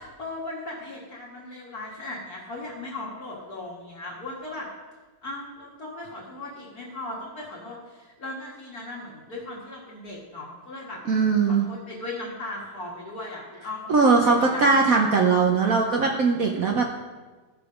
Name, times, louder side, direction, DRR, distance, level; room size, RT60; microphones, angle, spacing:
voice 1, 0.0-4.7 5.2-11.0 11.5-15.1, left 2 dB, 55° left, -4 dB, 2.2 m, -37 dB
voice 2, 11.1-11.7 13.9-16.9, right 4 dB, 55° right, 1 dB, 1.2 m, -20 dB
14.5 x 6.8 x 5.1 m, 1.3 s
omnidirectional pair, 1.9 m